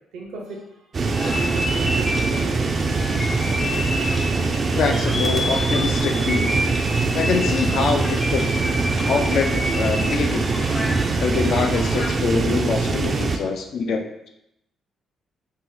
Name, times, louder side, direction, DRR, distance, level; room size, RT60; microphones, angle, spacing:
voice 1, 0.1-2.7, right 3 dB, 90° right, -1 dB, 0.7 m, -35 dB
sound 1, 0.9-13.4, right 3 dB, 40° right, 0.3 m, -23 dB
sound 2, 1.1-12.3, left 1 dB, 25° left, 0.6 m, -30 dB
voice 2, 4.8-6.5 7.1-8.5 9.1-10.7 11.2-14.3, left 5 dB, 70° left, 4 dB, 0.4 m, -24 dB
2.8 x 2.0 x 3.8 m, 0.81 s
cardioid pair, 90°, 0 cm